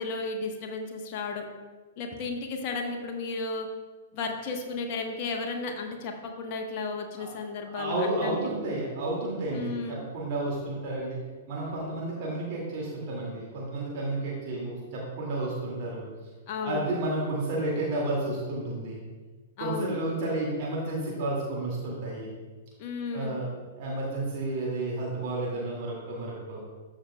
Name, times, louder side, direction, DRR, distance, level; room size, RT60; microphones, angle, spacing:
voice 1, 0.0-1.5 2.0-3.7 4.1-8.6 9.5-10.1 16.5-17.0 19.6-20.0 22.8-23.4, left 4 dB, 40° left, 2 dB, 1.1 m, -34 dB
voice 2, 7.7-11.2 11.5-16.1 16.6-19.0 19.6-22.3 23.1-26.6, right 2 dB, 45° right, -4 dB, 2.1 m, -31 dB
13.5 x 6.1 x 2.2 m, 1.3 s
figure-of-eight pair, 105°, 0 cm